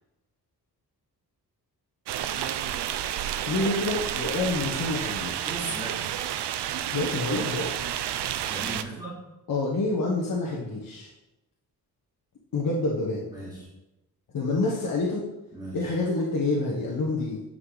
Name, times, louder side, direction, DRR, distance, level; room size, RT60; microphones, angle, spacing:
sound 1, 2.1-8.8, right 10 dB, 85° right, 0.6 m, -30 dB
voice 1, 3.5-5.6 6.9-7.7 9.5-11.1 12.5-13.2 14.3-15.3 15.7-17.4, left 2 dB, 55° left, -3 dB, 1.2 m, -27 dB
voice 2, 5.5-6.1 8.5-9.1 13.3-13.7 15.5-15.9, right 1 dB, 10° right, -9 dB, 2.8 m, -37 dB
9.7 x 4.8 x 3.9 m, 0.97 s
wide cardioid pair, 160°, 40 cm